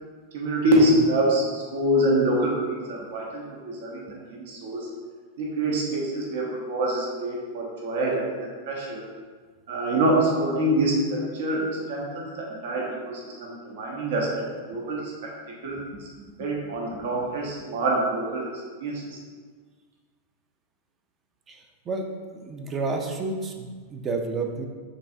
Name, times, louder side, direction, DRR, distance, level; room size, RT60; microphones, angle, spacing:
voice 1, 0.3-4.9 5.4-8.3 8.7-9.0 9.7-14.4 14.7-15.1 15.6-15.8 16.4-18.5 18.8-19.2, right 1 dB, 70° right, -3 dB, 1.0 m, -25 dB
voice 2, 22.3-24.7, right 3 dB, 25° right, 4 dB, 0.5 m, -31 dB
5.3 x 3.3 x 2.7 m, 1.5 s
supercardioid pair, 140°, 0 cm